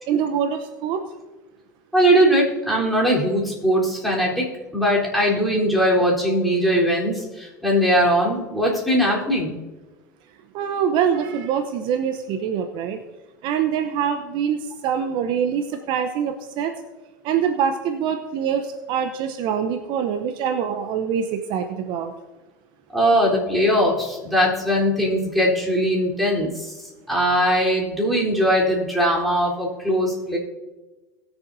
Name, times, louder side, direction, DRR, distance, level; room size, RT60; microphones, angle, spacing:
voice 1, 0.1-1.0 10.5-13.0 13.4-16.7 17.2-22.1, right 8 dB, 55° right, 7 dB, 0.9 m, -24 dB
voice 2, 1.9-4.5 4.7-9.6 22.9-26.7 27.1-30.4, equal, ahead, -4 dB, 3.9 m, -20 dB
20.5 x 7.2 x 2.7 m, 1.2 s
hypercardioid pair, 85°, 10 cm